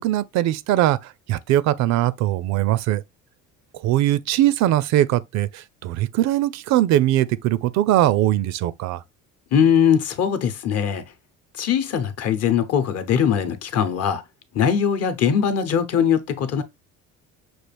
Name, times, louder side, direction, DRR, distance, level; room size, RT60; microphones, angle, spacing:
voice 1, 0.0-3.0 3.8-9.0, right 13 dB, 65° right, 0.5 m, -21 dB
voice 2, 9.5-11.0 11.6-14.2 14.5-16.6, left 8 dB, 55° left, 0.9 m, -21 dB
6.2 x 2.4 x 3.3 m
cardioid pair, 125°, 30 cm